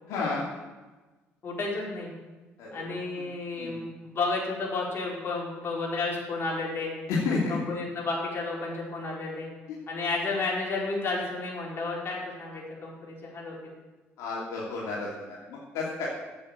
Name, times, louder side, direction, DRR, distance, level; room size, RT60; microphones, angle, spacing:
voice 1, 0.1-0.4 2.6-2.9 3.6-3.8 7.1-7.6 14.2-16.1, left 4 dB, 80° left, -5 dB, 2.8 m, -31 dB
voice 2, 1.4-2.1 2.7-6.9 7.5-9.5 9.9-13.5, left 3 dB, 45° left, -3 dB, 4.6 m, -32 dB
8.7 x 8.4 x 9.0 m, 1.2 s
supercardioid pair, 75°, 5 cm